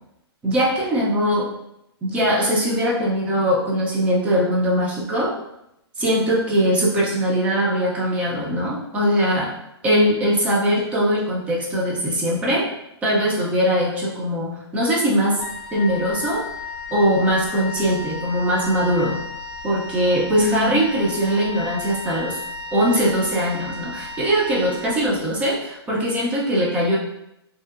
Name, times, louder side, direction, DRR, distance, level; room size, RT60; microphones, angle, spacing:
voice 1, 0.4-1.5 2.0-5.3 6.0-9.5 9.8-12.7 13.0-15.4 15.7-16.5 16.9-19.2 19.6-22.4 22.7-27.0, equal, 10° right, -3 dB, 0.4 m, -21 dB
Wind instrument woodwind instrument, 15.4-25.5, left 4 dB, 75° left, 0.4 m, -34 dB
2.6 x 2.1 x 2.3 m, 0.82 s
hypercardioid pair, 150°, 14 cm